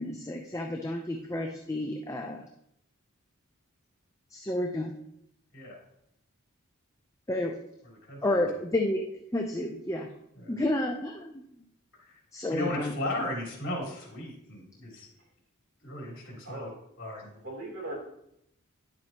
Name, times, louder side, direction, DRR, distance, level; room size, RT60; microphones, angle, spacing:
voice 1, 0.0-2.4 4.3-5.0 7.3-7.5 8.2-9.0 9.3-10.1 10.5-11.4 12.3-12.9, left 1 dB, 15° left, 2 dB, 0.6 m, -30 dB
voice 2, 7.8-8.5 10.4-10.5 12.0-12.2 12.5-15.1 15.8-16.7 17.0-17.3, left 1 dB, 60° left, -3 dB, 3.2 m, -36 dB
voice 3, 17.3-18.0, right 1 dB, 55° right, -3 dB, 3.3 m, -39 dB
10.5 x 7.5 x 2.9 m, 0.77 s
head